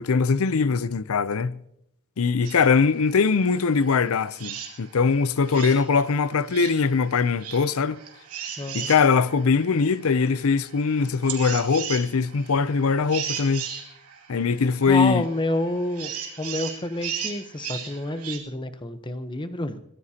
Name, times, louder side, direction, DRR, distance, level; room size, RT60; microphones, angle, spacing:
voice 1, 0.0-1.6 2.2-8.0 8.7-13.6 14.3-15.2, left 5 dB, 70° left, 0.5 m, -22 dB
sound 1, 2.4-18.4, right 8 dB, 90° right, 2.5 m, -37 dB
voice 2, 8.6-8.9 14.9-16.1 16.4-19.8, left 1 dB, 20° left, 0.9 m, -28 dB
22.5 x 18.0 x 2.9 m
head